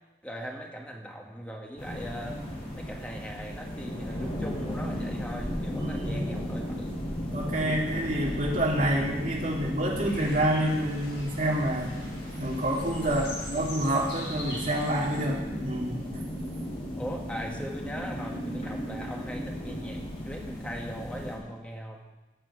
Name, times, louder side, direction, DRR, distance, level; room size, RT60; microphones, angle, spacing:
voice 1, 0.2-2.4 2.7-7.0 13.0-13.3 17.0-22.1, equal, 5° left, 0 dB, 1.4 m, -40 dB
sound 1, 1.8-21.4, equal, 35° left, 3.3 m, -35 dB
voice 2, 5.7-6.3 7.3-11.9 12.4-16.0, right 1 dB, 45° right, -3 dB, 2.5 m, -28 dB
sound 2, 10.1-15.2, left 1 dB, 70° left, 4.1 m, -42 dB
17.5 x 6.6 x 4.9 m, 1.1 s
head